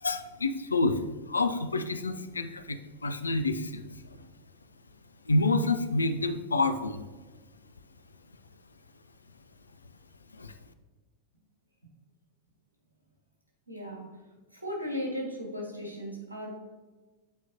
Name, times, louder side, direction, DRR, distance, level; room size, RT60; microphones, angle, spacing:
voice 1, 0.0-1.0 1.3-3.8 5.3-7.0 10.4-10.5, left 2 dB, 75° left, 9 dB, 0.4 m, -28 dB
voice 2, 13.7-14.2 14.5-16.6, equal, 85° right, -2 dB, 1.7 m, -36 dB
8.4 x 4.5 x 2.7 m, 1.3 s
figure-of-eight pair, 90°, 0 cm